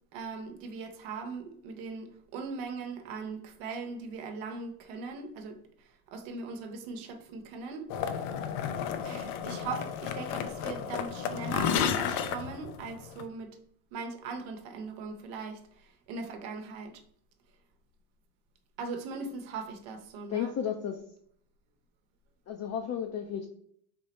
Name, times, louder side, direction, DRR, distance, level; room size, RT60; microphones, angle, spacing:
voice 1, 0.1-8.3 9.1-13.6 13.9-17.0 18.8-20.5, right 4 dB, 80° right, 0.8 m, -40 dB
sound 1, 7.9-13.2, left 7 dB, 85° left, 0.5 m, -32 dB
voice 2, 20.3-21.0 22.5-23.5, left 8 dB, 35° left, 0.4 m, -33 dB
3.6 x 2.0 x 4.0 m
supercardioid pair, 80°, 49 cm